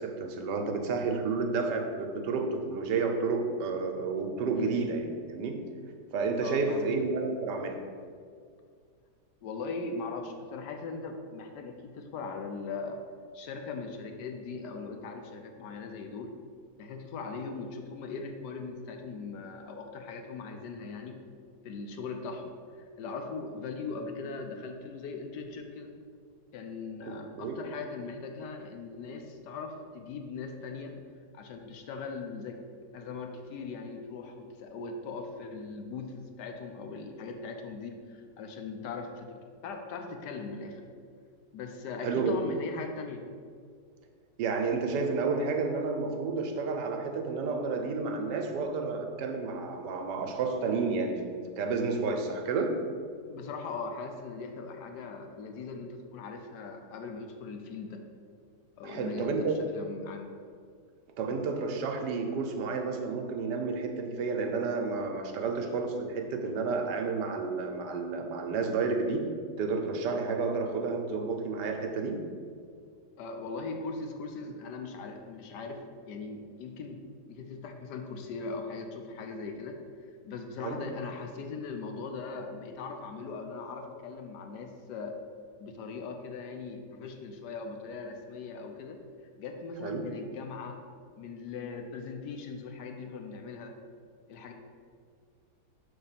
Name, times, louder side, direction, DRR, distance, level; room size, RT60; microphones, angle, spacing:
voice 1, 0.0-5.6 6.1-7.8 27.4-27.5 42.0-42.4 44.4-52.8 58.8-59.6 61.2-69.3 69.6-72.2 80.6-80.8 89.8-90.0, right 4 dB, 80° right, 4 dB, 1.3 m, -31 dB
voice 2, 6.4-6.9 9.4-13.0 13.3-16.3 16.8-21.2 21.6-26.0 26.5-31.0 31.3-32.6 32.9-40.8 41.5-43.3 53.3-58.0 58.8-60.3 73.2-79.8 80.2-85.2 85.6-89.0 89.4-90.8 91.2-93.8 94.3-94.5, left 4 dB, 80° left, 4 dB, 1.2 m, -40 dB
5.9 x 3.4 x 5.5 m, 2.1 s
omnidirectional pair, 1.9 m